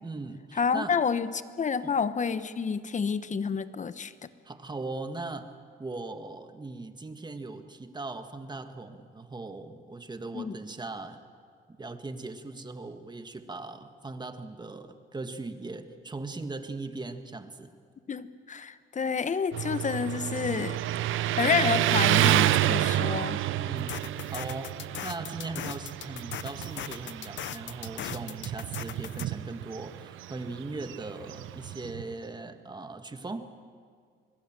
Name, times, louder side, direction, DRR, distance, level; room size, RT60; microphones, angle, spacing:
voice 1, 0.0-1.0 1.8-1.9 4.5-5.5 5.8-11.2 11.7-17.7 23.6-33.5, right 3 dB, 20° right, 8 dB, 1.8 m, -39 dB
voice 2, 0.6-4.1 10.3-10.5 18.1-20.8 21.4-23.4, left 6 dB, 40° left, 13 dB, 1.1 m, -29 dB
Motorcycle, 19.5-32.1, right 14 dB, 85° right, 0.8 m, -29 dB
sound 1, 23.8-29.3, left 12 dB, 65° left, 0.7 m, -39 dB
26.0 x 21.0 x 7.6 m, 2.1 s
cardioid pair, 90°, 20 cm